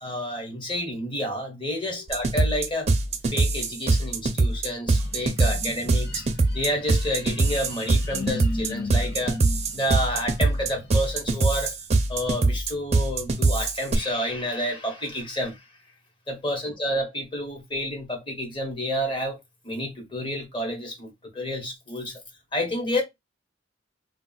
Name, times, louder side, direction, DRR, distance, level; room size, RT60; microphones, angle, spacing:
voice 1, 0.0-2.9 3.3-6.2 6.5-9.4 9.7-11.8 12.1-15.6 16.3-19.4 19.6-22.2 22.5-23.0, equal, 25° left, 1.1 m, -29 dB
sound 1, 2.1-13.9, right 3 dB, 35° right, 0.5 m, -23 dB
sound 2, 4.9-10.9, left 2 dB, 60° left, 1.0 m, -37 dB
2.3 x 2.3 x 3.8 m
head